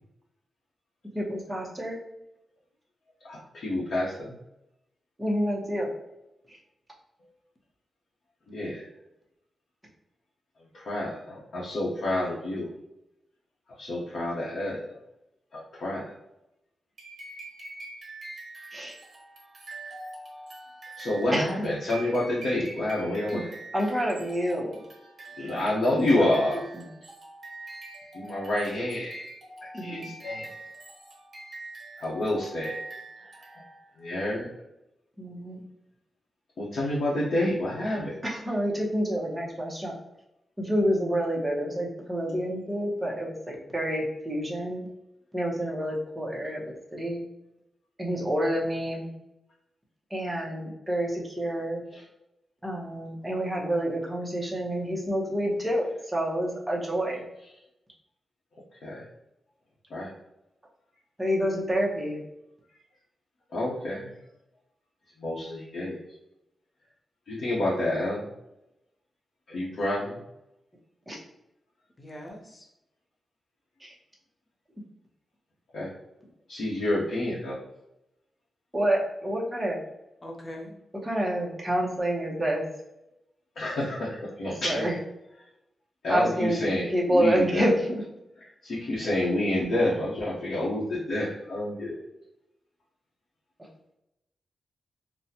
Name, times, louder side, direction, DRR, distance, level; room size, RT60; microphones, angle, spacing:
voice 1, 1.1-2.0 5.2-5.9 18.7-19.0 21.3-21.7 23.3-23.4 23.7-24.7 25.4-25.5 26.1-26.2 26.7-26.8 29.7-30.1 35.2-35.6 38.2-39.9 40.6-44.9 45.3-46.6 46.9-47.2 48.0-49.1 50.1-51.8 52.6-57.2 61.2-62.2 71.1-71.2 73.8-73.9 78.7-79.8 81.0-82.7 84.6-84.9 86.1-86.6 86.9-87.9 93.6-93.7, equal, 5° right, -3 dB, 0.8 m, -28 dB
voice 2, 3.2-4.4 8.5-8.9 10.7-12.7 13.8-15.0 15.5-16.1 21.0-23.5 25.4-26.6 28.1-29.2 29.7-30.5 32.0-32.8 33.2-33.3 34.0-34.5 36.6-38.2 51.9-52.0 58.8-59.0 59.9-60.1 63.5-64.1 65.2-66.0 67.3-68.2 69.5-70.2 75.7-75.9 76.5-77.6 83.6-84.9 86.0-87.6 88.6-92.0, left 1 dB, 70° left, -7 dB, 0.8 m, -28 dB
sound 1, 17.0-34.0, right 2 dB, 45° right, 1.1 m, -44 dB
voice 3, 72.0-72.7 80.2-80.7, equal, 20° left, 0 dB, 0.7 m, -41 dB
4.0 x 2.1 x 2.8 m, 0.87 s
wide cardioid pair, 150°, 0 cm